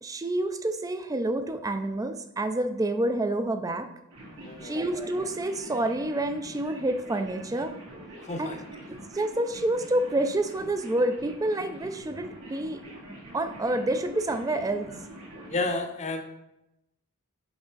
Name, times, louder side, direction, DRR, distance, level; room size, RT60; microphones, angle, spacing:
voice 1, 0.0-3.9 4.6-7.7 8.4-8.6 8.9-12.8 13.3-15.0, right 1 dB, 15° right, 9 dB, 0.4 m, -28 dB
sound 1, 4.1-15.7, right 1 dB, 75° right, 2.3 m, -45 dB
voice 2, 4.4-4.8 8.3-8.6 15.5-16.2, left 3 dB, 30° left, 5 dB, 0.7 m, -31 dB
6.0 x 5.2 x 3.9 m, 0.87 s
head